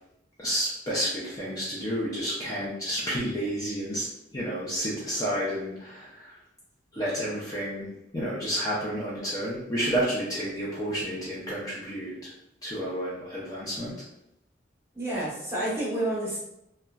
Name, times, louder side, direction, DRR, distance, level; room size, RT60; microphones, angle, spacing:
voice 1, 0.4-4.1 4.3-6.3 6.9-12.3 12.6-13.9, equal, 20° left, -7 dB, 0.5 m, -30 dB
voice 2, 14.9-16.4, right 1 dB, 15° right, -7 dB, 0.9 m, -29 dB
2.8 x 2.1 x 2.3 m, 0.82 s
head